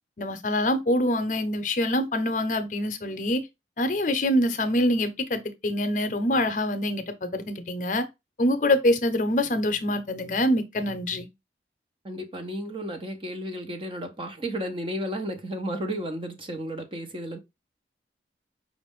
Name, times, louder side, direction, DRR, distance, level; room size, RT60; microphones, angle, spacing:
voice 1, 0.2-3.4 3.8-8.1 8.4-11.3, left 1 dB, 45° left, 0.7 m, -25 dB
voice 2, 12.0-17.4, equal, 30° right, 0.7 m, -33 dB
5.2 x 2.5 x 3.5 m
head